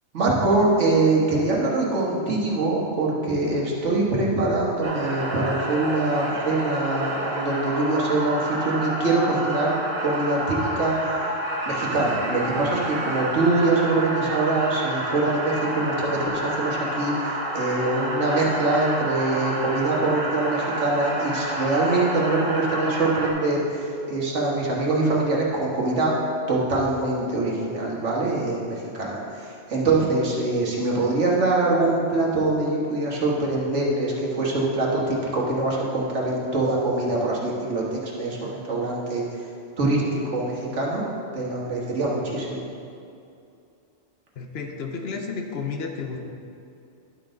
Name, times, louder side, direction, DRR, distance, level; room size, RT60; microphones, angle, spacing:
voice 1, 0.1-10.9 11.7-26.2 26.5-38.4 38.7-39.2 39.8-41.0 41.3-42.6, right 2 dB, 85° right, -4 dB, 1.8 m, -24 dB
sound 1, 4.8-23.3, right 1 dB, 55° right, 1.3 m, -29 dB
voice 2, 44.4-46.2, left 5 dB, 65° left, 3 dB, 1.0 m, -32 dB
11.0 x 6.3 x 3.9 m, 2.6 s
omnidirectional pair, 1.2 m